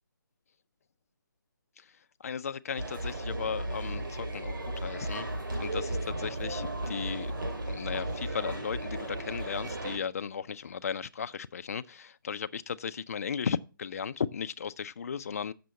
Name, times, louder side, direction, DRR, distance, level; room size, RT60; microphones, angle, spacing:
voice 1, 2.2-5.3 5.6-7.3 7.7-15.5, left 7 dB, 40° left, 0.4 m, -36 dB
sound 1, 2.8-10.0, right 1 dB, 65° right, 2.8 m, -35 dB
7.5 x 6.7 x 6.8 m
figure-of-eight pair, 155°, 12 cm